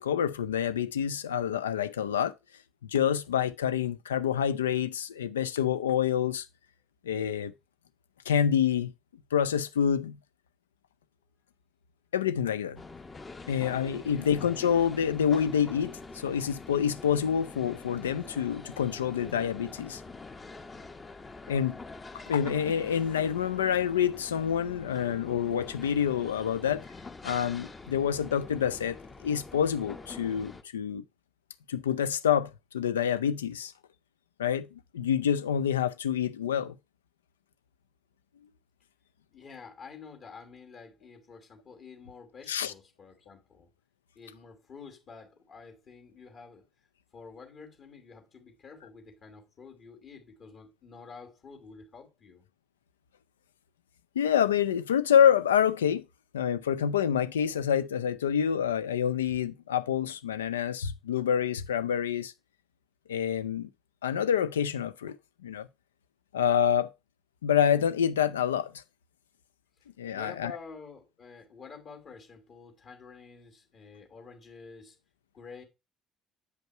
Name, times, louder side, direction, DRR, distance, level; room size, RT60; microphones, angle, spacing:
voice 1, 0.0-2.3 2.8-6.5 7.0-7.5 8.3-8.9 9.3-10.2 12.1-12.8 13.5-20.0 21.5-21.8 22.3-26.8 27.2-31.0 31.7-33.7 34.4-36.8 42.5-42.7 54.2-56.0 56.3-62.3 63.1-63.7 64.0-65.2 65.4-65.7 66.3-66.9 67.4-68.8 70.0-70.6, left 8 dB, 80° left, 0.4 m, -27 dB
sound 1, 12.8-30.6, left 3 dB, 25° left, 0.9 m, -45 dB
voice 2, 14.0-14.3 39.3-43.7 44.1-46.6 47.1-52.4 70.1-75.0 75.3-75.6, left 5 dB, 45° left, 2.5 m, -49 dB
8.1 x 5.3 x 4.4 m
figure-of-eight pair, 55°, 0 cm